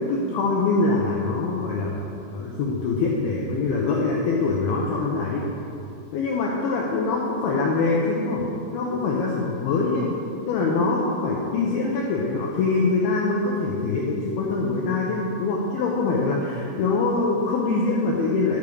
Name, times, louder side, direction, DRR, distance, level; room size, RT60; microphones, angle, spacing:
voice 1, 0.0-5.5 6.1-8.4 8.7-10.1 10.5-18.6, left 3 dB, 80° left, -3 dB, 2.3 m, -24 dB
10.5 x 8.9 x 4.9 m, 2.6 s
omnidirectional pair, 5.5 m